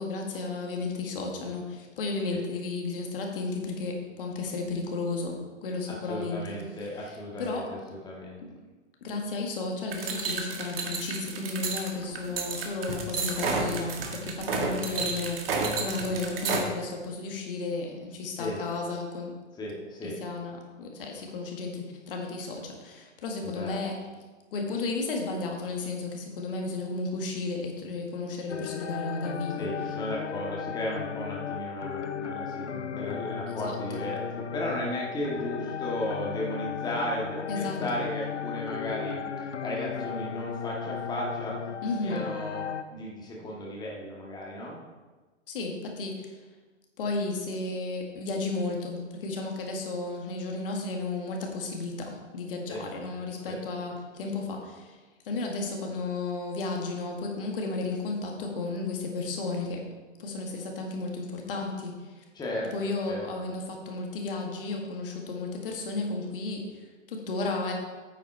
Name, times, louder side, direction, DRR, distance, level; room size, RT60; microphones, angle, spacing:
voice 1, 0.0-7.7 8.4-8.5 9.0-19.3 20.0-24.0 24.5-29.7 33.6-34.0 37.5-38.0 41.8-42.2 45.5-46.4 47.0-55.0 55.2-59.8 60.2-62.2 62.7-66.8 67.1-67.7, left 3 dB, 50° left, 1 dB, 1.9 m, -33 dB
voice 2, 6.0-7.6 7.9-8.4 18.4-18.6 19.6-20.2 23.4-23.8 29.6-41.6 42.0-44.8 52.7-52.8 53.5-53.6 62.3-62.7 63.1-63.2, left 1 dB, 10° left, -3 dB, 1.7 m, -35 dB
sound 1, 9.9-16.6, right 4 dB, 50° right, 1.9 m, -31 dB
sound 2, 28.5-42.8, left 7 dB, 65° left, 0.8 m, -35 dB
9.3 x 8.2 x 4.5 m, 1.3 s
figure-of-eight pair, 110°, 36 cm